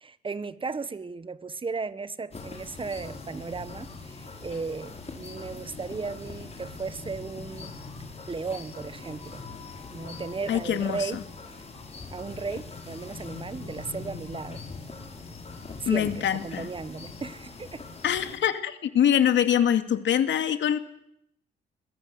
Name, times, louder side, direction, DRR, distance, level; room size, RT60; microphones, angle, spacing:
voice 1, 0.0-7.8 8.3-9.4 9.9-11.2 12.1-14.6 15.8-17.8, right 4 dB, 25° right, 1.5 m, -35 dB
sound 1, 2.3-18.4, left 4 dB, 30° left, 5.8 m, -42 dB
voice 2, 10.5-11.2 15.9-16.7 18.0-20.8, left 9 dB, 70° left, 2.5 m, -24 dB
26.0 x 22.0 x 7.9 m
cardioid pair, 90°, 20 cm